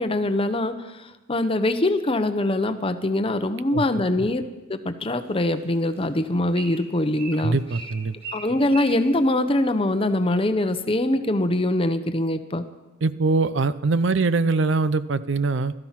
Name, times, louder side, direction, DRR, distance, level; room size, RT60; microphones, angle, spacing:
voice 1, 0.0-4.4 4.7-7.6 8.3-12.6, left 1 dB, 25° left, 9 dB, 0.8 m, -23 dB
Bird, 5.0-10.1, right 3 dB, 25° right, 6.5 m, -42 dB
voice 2, 7.3-8.2 13.0-15.7, right 3 dB, 65° right, 15 dB, 0.6 m, -22 dB
16.5 x 13.0 x 5.8 m, 1.1 s
head